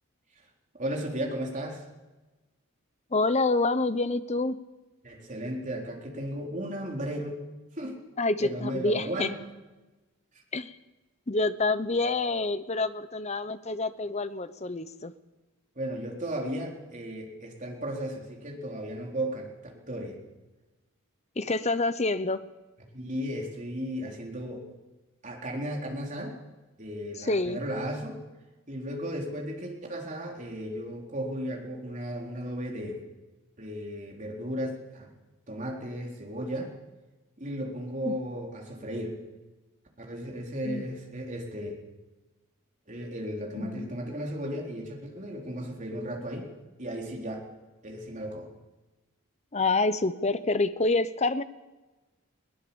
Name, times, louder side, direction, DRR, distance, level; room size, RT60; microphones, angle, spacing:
voice 1, 0.7-1.8 5.0-7.4 7.8-8.0 8.4-9.3 15.8-19.5 19.9-20.2 22.9-24.6 25.2-26.4 26.8-28.2 28.7-33.0 33.6-35.1 35.5-36.7 37.4-39.2 40.0-41.8 42.9-46.5 46.8-47.4 47.8-48.5, equal, 35° right, 0 dB, 4.0 m, -35 dB
voice 2, 3.1-4.6 8.2-9.3 10.5-10.8 11.3-15.1 21.4-22.5 27.2-27.6 38.0-38.2 40.6-40.9 43.6-43.9 49.5-51.4, left 3 dB, 30° left, 13 dB, 0.9 m, -27 dB
21.5 x 18.5 x 7.2 m, 1.1 s
head